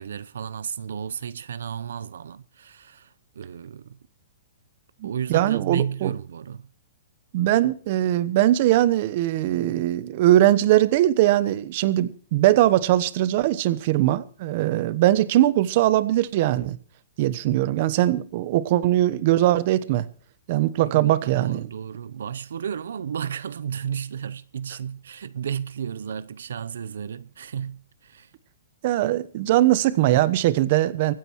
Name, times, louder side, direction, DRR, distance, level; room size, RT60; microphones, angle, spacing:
voice 1, 0.0-4.0 5.0-6.7 20.8-28.3, right 8 dB, 80° right, 0.7 m, -33 dB
voice 2, 5.0-6.1 7.3-16.8 17.2-20.1 20.5-21.7 28.8-31.1, right 14 dB, 40° right, 1.0 m, -21 dB
24.0 x 9.1 x 4.6 m
hypercardioid pair, 160°, 0 cm